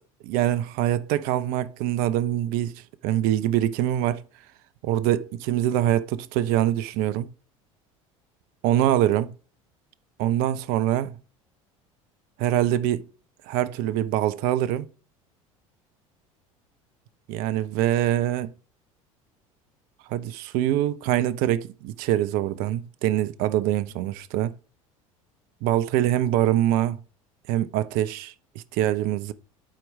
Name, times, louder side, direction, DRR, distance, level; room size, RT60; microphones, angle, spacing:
voice 1, 0.2-4.2 4.8-7.3 8.6-9.3 10.2-11.2 12.4-13.1 13.5-14.9 17.3-18.5 20.1-24.5 25.6-27.0 27.5-28.3 28.7-29.3, right 12 dB, 55° right, 0.6 m, -24 dB
11.5 x 4.5 x 3.2 m
figure-of-eight pair, 70°, 18 cm